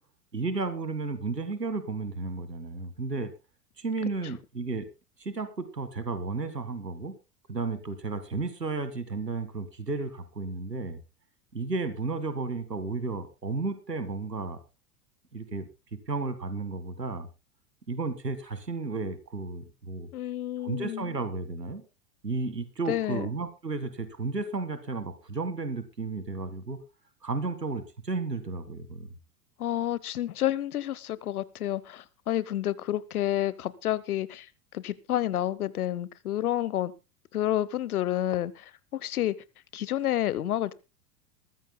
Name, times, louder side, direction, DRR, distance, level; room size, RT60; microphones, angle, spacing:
voice 1, 0.3-3.3 3.8-4.9 5.2-7.2 7.5-11.0 11.5-14.6 15.3-17.3 17.9-20.1 20.6-21.8 22.2-26.8 27.2-29.1, right 3 dB, 85° right, 1.9 m, -33 dB
voice 2, 20.1-21.1 22.9-23.3 29.6-34.5 34.7-36.9 37.3-39.3 39.7-40.7, left 12 dB, 65° left, 1.0 m, -29 dB
22.0 x 14.0 x 2.2 m
figure-of-eight pair, 85°, 48 cm